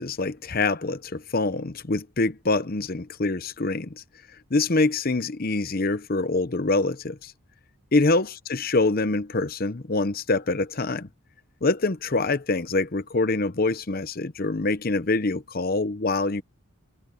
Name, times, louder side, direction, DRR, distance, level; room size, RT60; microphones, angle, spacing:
voice 1, 0.0-4.0 4.5-7.3 7.9-11.1 11.6-16.4, left 3 dB, 40° left, 0.8 m, -25 dB
head